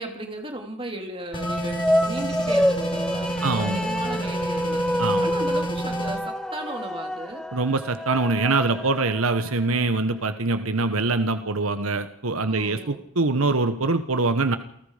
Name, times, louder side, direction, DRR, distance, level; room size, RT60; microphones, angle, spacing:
voice 1, 0.0-7.5 12.4-13.1, right 1 dB, 25° right, 3 dB, 3.7 m, -36 dB
sound 1, 1.3-6.2, right 1 dB, 25° left, 5.1 m, -30 dB
sound 2, 1.3-9.8, equal, 5° left, 0.7 m, -27 dB
voice 2, 3.4-3.8 5.0-5.3 7.5-14.6, right 3 dB, 90° right, 10 dB, 1.3 m, -24 dB
29.5 x 19.0 x 5.1 m, 0.72 s
head